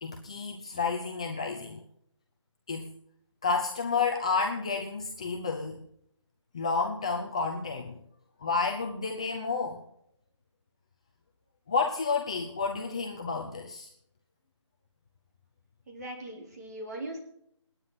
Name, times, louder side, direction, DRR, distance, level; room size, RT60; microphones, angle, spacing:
voice 1, 0.0-1.8 2.7-2.9 3.4-5.8 6.5-8.0 8.4-9.8 11.7-13.9, left 4 dB, 10° left, 1 dB, 0.6 m, -30 dB
voice 2, 15.9-17.2, right 1 dB, 30° right, 0 dB, 4.2 m, -39 dB
28.0 x 9.5 x 4.1 m, 0.71 s
figure-of-eight pair, 175°, 16 cm